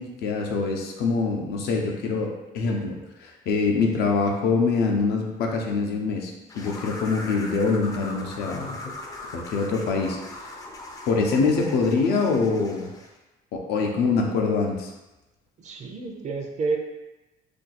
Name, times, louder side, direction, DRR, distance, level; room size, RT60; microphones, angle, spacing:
voice 1, 0.0-8.8 9.3-10.5 11.1-12.9 13.5-14.9, left 4 dB, 75° left, 1 dB, 0.6 m, -24 dB
sound 1, 6.5-13.2, left 2 dB, 20° left, 0.4 m, -40 dB
voice 2, 15.6-16.8, right 4 dB, 45° right, 2 dB, 0.5 m, -29 dB
2.6 x 2.3 x 4.1 m, 1.0 s
cardioid pair, 110°, 17 cm